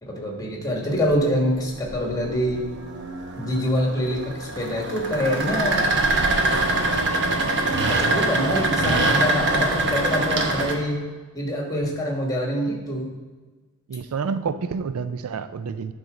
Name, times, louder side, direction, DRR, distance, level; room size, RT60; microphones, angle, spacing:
voice 1, 0.0-2.7 3.4-5.9 7.9-11.0 11.3-13.1, equal, 15° left, -1 dB, 1.4 m, -25 dB
sound 1, 0.9-10.7, right 2 dB, 55° right, 0.9 m, -24 dB
voice 2, 13.9-15.9, right 5 dB, 70° right, 11 dB, 0.4 m, -28 dB
11.0 x 4.0 x 4.9 m, 1.3 s
head